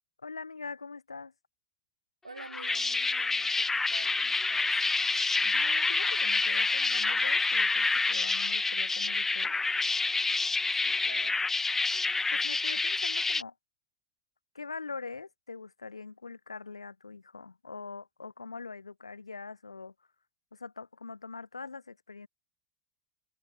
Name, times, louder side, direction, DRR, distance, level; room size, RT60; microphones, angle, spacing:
voice 1, 0.2-1.3 5.4-9.6 12.3-13.5 14.5-19.9 20.5-22.3, left 4 dB, 80° left, 4.9 m, -43 dB
voice 2, 2.2-4.8 10.7-11.4, right 3 dB, 80° right, 5.1 m, -48 dB
sound 1, 2.4-13.4, left 3 dB, 10° left, 0.8 m, -28 dB
figure-of-eight pair, 80°, 3 cm